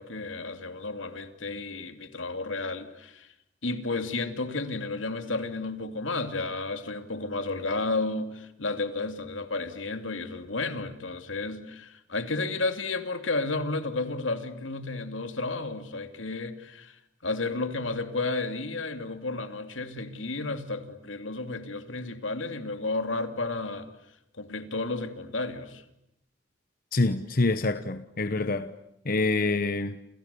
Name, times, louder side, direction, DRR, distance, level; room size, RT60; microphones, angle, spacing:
voice 1, 0.0-3.3 3.6-23.9 24.3-25.8, left 3 dB, 85° left, 2.7 m, -32 dB
voice 2, 26.9-28.7 29.0-30.0, left 3 dB, 50° left, 1.0 m, -26 dB
29.5 x 28.5 x 7.0 m
head